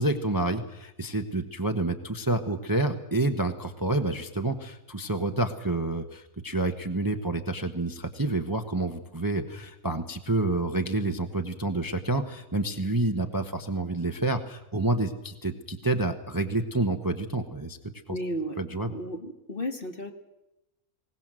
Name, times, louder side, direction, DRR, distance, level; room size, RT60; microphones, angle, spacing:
voice 1, 0.0-17.8 18.1-18.2 18.6-18.9, right 2 dB, 15° right, 6 dB, 0.9 m, -28 dB
voice 2, 18.1-18.6 18.9-20.1, equal, 40° left, 5 dB, 1.8 m, -33 dB
21.0 x 18.5 x 7.6 m, 0.91 s
omnidirectional pair, 1.6 m